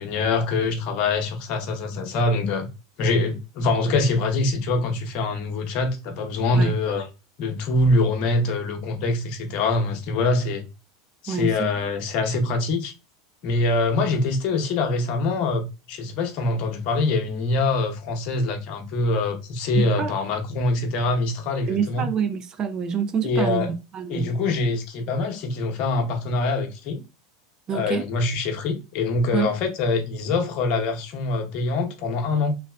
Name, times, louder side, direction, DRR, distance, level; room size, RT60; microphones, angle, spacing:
voice 1, 0.0-2.7 3.0-7.1 7.4-10.6 11.2-12.9 13.4-22.0 23.2-23.7 24.1-27.0 27.7-32.6, left 3 dB, 50° left, 0.8 m, -24 dB
voice 2, 11.3-11.7 19.8-20.1 21.7-23.7 23.9-24.3 27.7-28.1 29.3-29.5, right 7 dB, 35° right, 0.4 m, -26 dB
3.1 x 2.8 x 2.3 m
hypercardioid pair, 85°, 2 cm